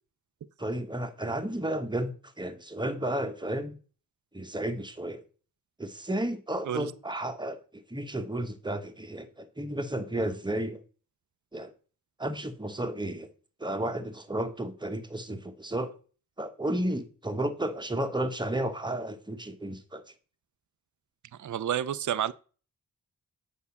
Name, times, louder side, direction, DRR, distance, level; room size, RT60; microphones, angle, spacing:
voice 1, 0.6-3.8 4.3-5.2 5.8-10.8 11.5-11.7 12.2-13.3 13.6-15.9 16.4-20.0, right 1 dB, 10° right, 1.2 m, -32 dB
voice 2, 21.4-22.3, right 10 dB, 55° right, 0.6 m, -30 dB
8.3 x 5.4 x 7.1 m
wide cardioid pair, 95°, 35 cm